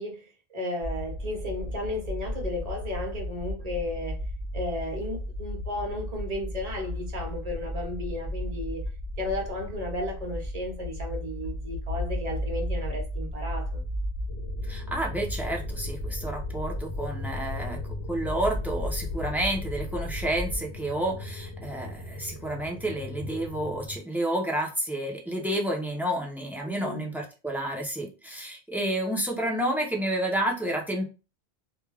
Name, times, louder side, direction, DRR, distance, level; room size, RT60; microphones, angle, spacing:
voice 1, 0.0-4.2 4.5-8.8 9.2-13.8 26.6-27.0, left 1 dB, 40° right, 0.9 m, -34 dB
sound 1, 0.8-20.6, left 1 dB, 55° left, 1.0 m, -34 dB
sound 2, 14.3-24.0, left 1 dB, 80° left, 0.8 m, -40 dB
voice 2, 14.7-17.8 18.1-31.1, right 1 dB, 5° right, 0.4 m, -30 dB
2.3 x 2.3 x 3.2 m
omnidirectional pair, 1.1 m